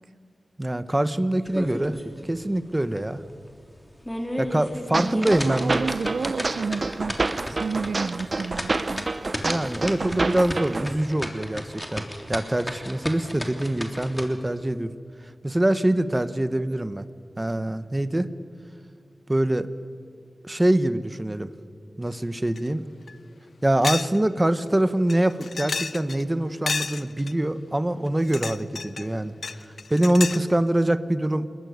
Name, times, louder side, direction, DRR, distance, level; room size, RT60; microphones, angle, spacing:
voice 1, 0.6-2.0 2.2-3.2 4.4-5.8 9.4-12.0 12.3-14.9 15.4-17.1 17.4-18.3 19.3-19.7 20.4-21.5 22.0-22.8 23.6-31.5, right 1 dB, 20° right, 1.2 m, -24 dB
sound 1, 1.5-2.2 2.6-2.7 3.2-3.3 3.9-14.3, equal, 10° left, 3.2 m, -34 dB
sound 2, 4.9-10.9, right 3 dB, 45° right, 0.9 m, -28 dB
voice 2, 4.9-7.2 7.5-9.0 10.0-10.5, right 4 dB, 80° right, 0.6 m, -31 dB
sound 3, 22.6-22.7 23.1-23.2 23.8-24.2 24.5-24.6 25.1-26.2 26.7-27.3 28.1-29.1 29.4-30.5, left 4 dB, 75° left, 0.7 m, -31 dB
28.0 x 21.0 x 9.6 m
wide cardioid pair, 95°, 0 cm